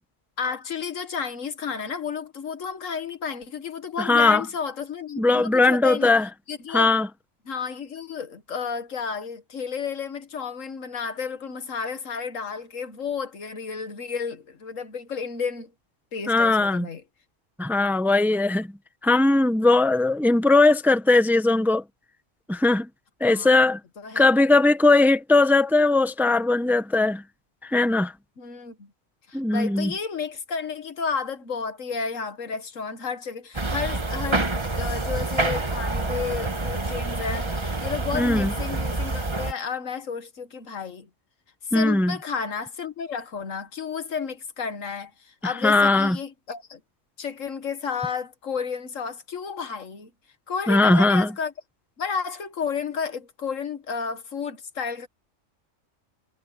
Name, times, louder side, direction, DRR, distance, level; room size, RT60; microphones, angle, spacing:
voice 1, 0.4-6.1 6.5-6.9 7.5-15.7 16.1-17.0 23.3-23.5 24.0-24.3 28.4-28.9 29.3-41.1 41.7-46.8 47.2-50.1 50.5-51.5 52.0-55.1, left 6 dB, 75° left, 1.8 m, -32 dB
voice 2, 4.0-4.5 5.2-6.3 6.7-7.1 16.3-16.9 17.6-18.7 19.0-21.8 22.5-22.9 23.2-23.8 24.1-27.2 27.6-28.1 29.3-29.9 38.1-38.5 41.7-42.2 45.4-46.2 50.7-51.3, left 2 dB, ahead, 0.9 m, -19 dB
sound 1, 33.5-39.5, right 2 dB, 20° right, 1.3 m, -27 dB
omnidirectional pair, 1.4 m